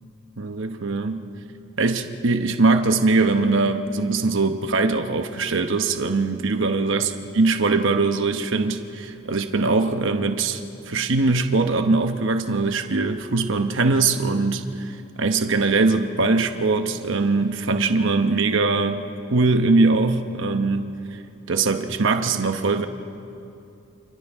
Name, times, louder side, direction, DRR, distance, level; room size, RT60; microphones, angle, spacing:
voice 1, 0.4-1.2 1.8-7.0 7.4-19.0 19.3-20.9 21.5-22.9, right 3 dB, 65° right, 6 dB, 1.0 m, -21 dB
29.0 x 28.0 x 3.6 m, 2.7 s
head